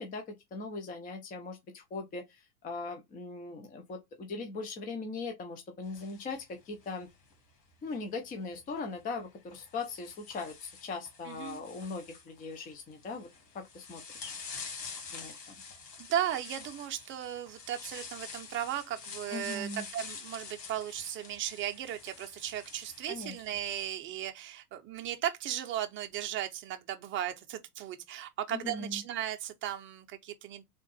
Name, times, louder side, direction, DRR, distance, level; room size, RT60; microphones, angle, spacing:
voice 1, 0.0-7.1 7.8-13.3 13.5-14.3 15.1-15.6 19.3-19.9 23.1-23.3 28.5-29.0, left 3 dB, 20° left, 0.6 m, -40 dB
sound 1, 5.8-7.3 8.6-8.8 9.5-23.9, left 5 dB, 85° left, 1.9 m, -47 dB
voice 2, 11.3-11.6 15.3-15.4 16.0-30.6, right 11 dB, 25° right, 0.7 m, -36 dB
3.7 x 2.5 x 4.0 m
hypercardioid pair, 110°, 48 cm